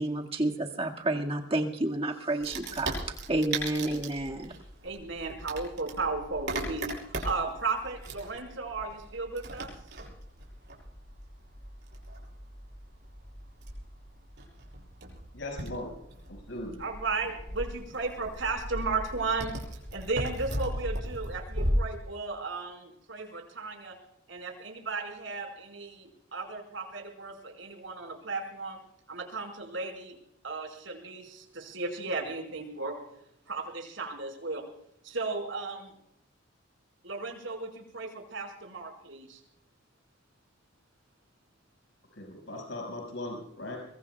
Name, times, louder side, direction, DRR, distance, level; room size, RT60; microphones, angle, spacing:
voice 1, 0.0-4.5, right 1 dB, 30° right, 0 dB, 2.0 m, -30 dB
Wood, 2.4-21.7, right 1 dB, 60° right, 6.7 m, -38 dB
voice 2, 4.8-9.7 16.8-19.5 19.9-24.0 24.3-28.8 29.1-30.2 30.4-33.0 33.5-34.6 35.0-35.9 37.0-39.4, right 3 dB, 75° right, 3 dB, 5.3 m, -35 dB
voice 3, 15.3-15.9 16.3-16.8 42.2-43.8, left 1 dB, 70° left, 1 dB, 5.8 m, -38 dB
24.0 x 23.0 x 2.4 m, 0.76 s
head